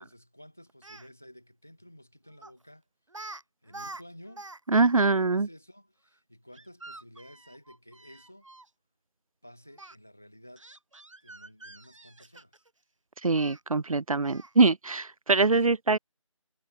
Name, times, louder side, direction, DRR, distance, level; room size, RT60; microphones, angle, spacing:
voice 1, 0.0-2.8 3.2-4.5 5.1-8.5 9.4-10.7 11.2-12.6 15.5-15.7, equal, 5° left, 0.8 m, -52 dB
Speech, 0.7-1.1 2.4-2.6 3.1-3.4 3.7-4.6 4.9-5.0 6.5-8.7 9.8-9.9 10.6-12.7 13.3-13.6 14.2-14.6, right 2 dB, 65° right, 2.5 m, -46 dB
voice 2, 4.7-5.5 13.2-16.0, right 3 dB, 85° right, 0.8 m, -23 dB
figure-of-eight pair, 175°, 17 cm